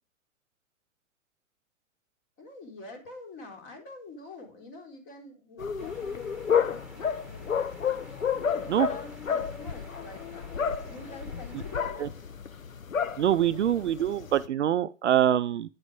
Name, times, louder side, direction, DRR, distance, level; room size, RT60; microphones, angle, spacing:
voice 1, 2.4-7.7 8.3-12.3, left 3 dB, 30° left, 3.7 m, -47 dB
sound 1, 5.6-14.5, left 7 dB, 75° left, 1.0 m, -31 dB
sound 2, 5.8-11.8, right 2 dB, ahead, 1.9 m, -52 dB
voice 2, 13.2-15.7, right 10 dB, 55° right, 0.6 m, -24 dB
9.8 x 8.0 x 5.1 m
figure-of-eight pair, 110°, 41 cm